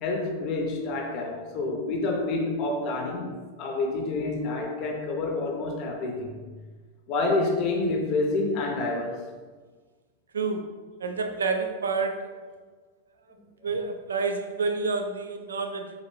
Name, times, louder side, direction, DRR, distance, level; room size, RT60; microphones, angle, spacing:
voice 1, 0.0-3.3 3.6-6.4 7.1-9.2, left 2 dB, 40° left, 1 dB, 0.6 m, -28 dB
voice 2, 10.3-10.7 11.0-12.4 13.6-16.0, right 4 dB, 70° right, 6 dB, 0.3 m, -29 dB
4.1 x 2.5 x 3.1 m, 1.4 s
figure-of-eight pair, 90°, 0 cm